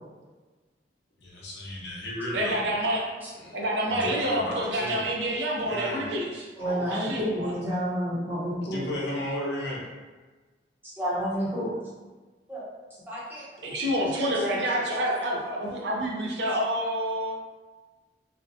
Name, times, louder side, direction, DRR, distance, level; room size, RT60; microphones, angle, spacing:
voice 1, 1.2-2.7 3.4-3.6 3.9-5.1 5.5-6.0 8.7-9.9, left 1 dB, 70° left, -4 dB, 0.7 m, -34 dB
voice 2, 2.3-3.0 3.5-7.5 13.6-17.3, equal, 70° right, -2 dB, 0.5 m, -28 dB
voice 3, 6.6-8.8 10.8-11.7 12.5-12.6 13.0-13.4, equal, 10° right, -8 dB, 0.8 m, -30 dB
2.6 x 2.1 x 2.6 m, 1.3 s
head